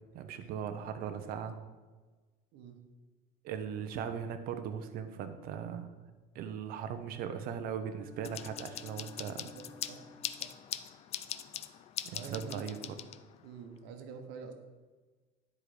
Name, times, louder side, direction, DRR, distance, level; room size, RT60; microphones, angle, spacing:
voice 1, 0.1-1.6 3.4-5.9 6.3-9.5 12.1-12.8, right 8 dB, 55° right, 9 dB, 0.8 m, -39 dB
Bowed string instrument, 7.6-10.7, left 2 dB, 30° right, 3.1 m, -55 dB
sound 1, 8.2-13.5, left 11 dB, 35° left, 0.4 m, -42 dB
voice 2, 9.3-10.0 10.4-10.5 12.1-12.9 13.4-14.5, right 6 dB, 75° right, 5 dB, 1.2 m, -47 dB
10.0 x 4.9 x 5.1 m, 1.3 s
cardioid pair, 155°, 18 cm